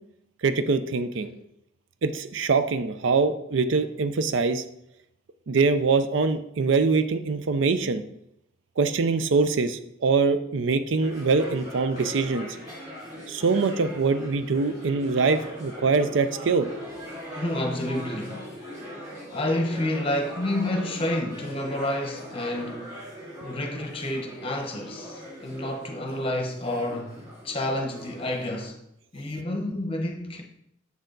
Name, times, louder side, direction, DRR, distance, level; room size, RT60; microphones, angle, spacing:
voice 1, 0.4-1.3 2.0-4.6 5.5-8.0 8.8-12.5 13.3-16.7, right 4 dB, 70° right, 0.5 m, -23 dB
sound 1, 11.0-28.7, equal, 30° right, 2.7 m, -40 dB
voice 2, 17.4-18.5 19.3-23.0 23.4-27.1 27.4-28.7 29.1-30.4, left 1 dB, 25° left, 1.0 m, -29 dB
7.1 x 6.5 x 3.9 m
head